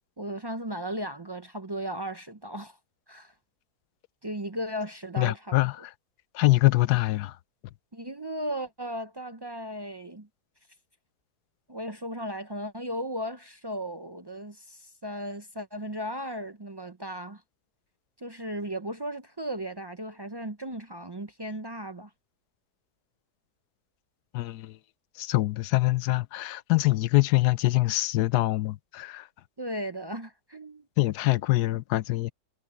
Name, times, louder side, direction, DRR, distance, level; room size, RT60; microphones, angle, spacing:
voice 1, 0.2-2.8 3.1-3.3 4.2-5.4 7.9-10.3 11.7-17.4 18.2-22.1 29.6-30.9, equal, 35° right, 0.3 m, -36 dB
voice 2, 5.2-5.9 6.3-7.4 24.3-24.8 25.2-29.3 31.0-32.3, left 19 dB, 85° left, 1.1 m, -24 dB
omnidirectional pair, 1.7 m